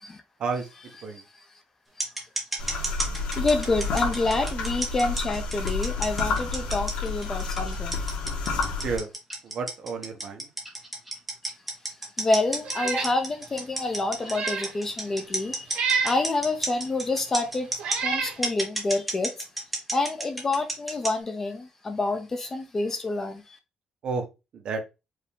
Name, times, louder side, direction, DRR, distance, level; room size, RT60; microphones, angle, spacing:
sound 1, 2.0-18.0 18.4-21.1, right 1 dB, 5° right, 1.1 m, -31 dB
sound 2, 2.6-9.0, left 4 dB, 90° left, 1.4 m, -30 dB
voice 1, 3.3-8.0 12.2-17.7 18.0-19.3 19.9-23.6, left 2 dB, 20° left, 0.5 m, -28 dB
voice 2, 8.7-9.1 9.4-10.5 24.0-24.3 24.5-24.8, right 4 dB, 45° right, 0.9 m, -31 dB
Meow, 12.6-13.1 13.6-13.7 14.2-14.7 15.7-16.2 17.1-17.2 17.8-18.4, right 5 dB, 75° right, 1.2 m, -28 dB
4.9 x 2.6 x 3.4 m
cardioid pair, 175°, 2 cm